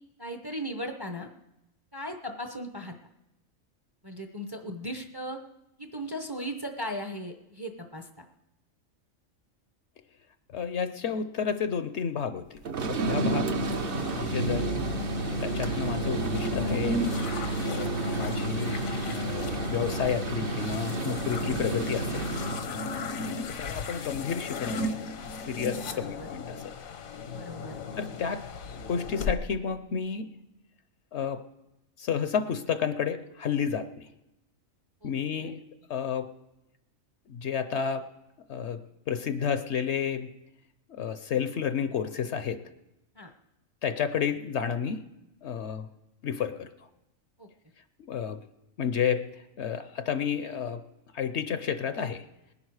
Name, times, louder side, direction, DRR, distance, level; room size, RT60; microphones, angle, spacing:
voice 1, 0.2-1.3 1.9-2.9 4.0-5.4 5.8-8.1 13.5-13.6 22.9-23.0 25.9-26.3 27.3-27.8 35.0-35.5 43.1-43.3 47.4-47.5, equal, 20° right, 5 dB, 0.7 m, -37 dB
voice 2, 10.5-12.6 12.9-13.5 14.1-14.7 15.4-17.0 17.7-17.9 18.2-22.3 23.5-25.0 25.5-26.7 28.0-28.4 28.9-30.3 31.1-31.4 32.0-34.1 35.0-35.6 35.9-36.3 37.3-38.0 38.5-38.8 39.1-40.3 41.0-42.6 43.8-45.0 45.4-45.9 46.2-46.7 48.1-48.4 48.8-49.3 49.6-50.8 51.1-52.3, left 7 dB, 60° left, 11 dB, 0.9 m, -31 dB
sound 1, 12.6-22.7, right 2 dB, 50° right, 0.9 m, -30 dB
sound 2, 13.6-29.3, left 3 dB, 80° left, 1.3 m, -36 dB
19.5 x 11.0 x 4.8 m, 0.92 s
omnidirectional pair, 1.4 m